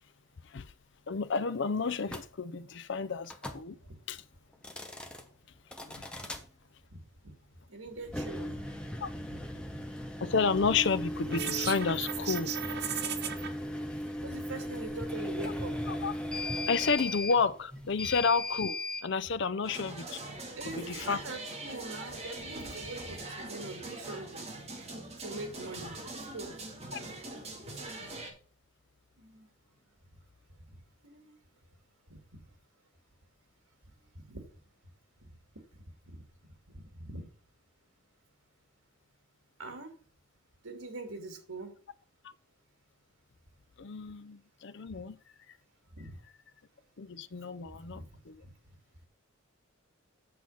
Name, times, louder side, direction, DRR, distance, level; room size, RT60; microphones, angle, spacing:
voice 1, 1.1-3.8 4.1-4.2 5.8-6.1 9.0-9.1 10.2-12.5 15.9-16.1 16.7-20.2 20.7-21.2 26.9-27.0 28.0-28.3 43.8-45.2 47.0-48.4, left 5 dB, 55° left, 0.5 m, -31 dB
sound 1, 2.1-2.3 3.2-3.6 4.5-5.2 5.7-6.4 8.0-19.1, left 1 dB, 5° left, 0.8 m, -37 dB
voice 2, 6.9-7.3 7.7-8.7 9.1-9.8 14.2-15.8 18.0-18.1 20.6-24.5 24.8-24.9 25.2-26.5 29.2-29.5 31.0-31.3 32.1-32.2 34.1-34.4 35.2-35.3 36.0-36.2 36.7-37.3 39.6-39.9 40.6-41.7 44.9-45.0 45.9-46.2 47.7-48.1 48.4-48.5, right 2 dB, 85° right, 2.3 m, -43 dB
sound 2, 11.3-13.5, right 9 dB, 50° right, 0.9 m, -35 dB
sound 3, 19.6-28.3, right 2 dB, 30° right, 2.1 m, -42 dB
8.5 x 6.0 x 5.5 m
head